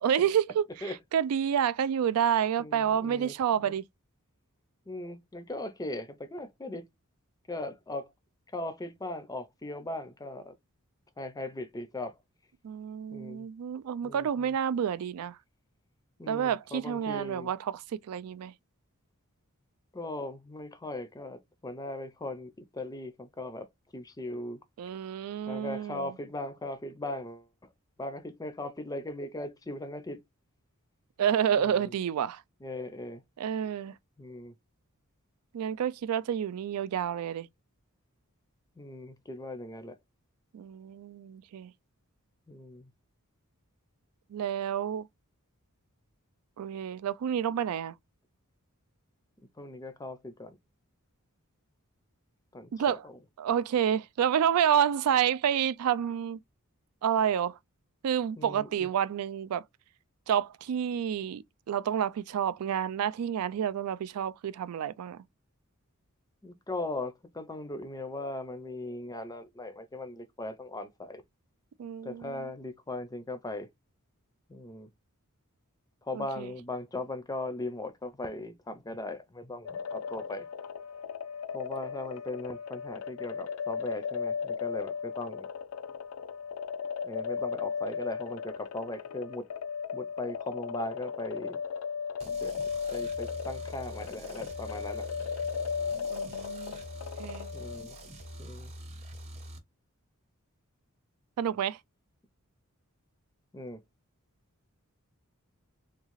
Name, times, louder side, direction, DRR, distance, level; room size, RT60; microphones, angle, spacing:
voice 1, 0.0-3.8 12.6-15.4 16.3-18.5 24.8-26.1 31.2-32.4 33.4-33.9 35.5-37.5 40.5-41.7 44.3-45.1 46.6-47.9 52.7-53.1 53.4-56.4 57.0-57.6 58.0-59.6 60.3-65.2 71.8-72.4 76.1-76.5 96.1-96.8 97.2-97.5 101.4-101.8, right 9 dB, 80° right, 0.3 m, -29 dB
voice 2, 2.6-3.8 4.9-6.8 7.5-8.1 8.5-10.5 11.2-12.1 13.1-13.5 14.0-14.5 16.2-17.5 19.9-23.7 23.9-24.6 25.5-27.5 28.0-30.2 31.6-31.9 32.6-33.2 34.2-34.5 38.8-39.9 42.5-42.9 49.6-50.6 52.5-53.1 58.4-58.9 66.4-71.2 72.0-73.7 74.5-74.9 76.0-80.5 81.5-85.5 87.0-89.5 89.9-91.6 92.4-92.5 92.9-95.1 97.5-98.0 98.4-98.7 103.5-103.8, left 2 dB, 15° left, 0.5 m, -39 dB
sound 1, 79.7-98.1, left 6 dB, 70° left, 0.4 m, -36 dB
sound 2, 92.2-99.6, right 1 dB, 30° right, 0.9 m, -45 dB
3.6 x 2.4 x 3.1 m
head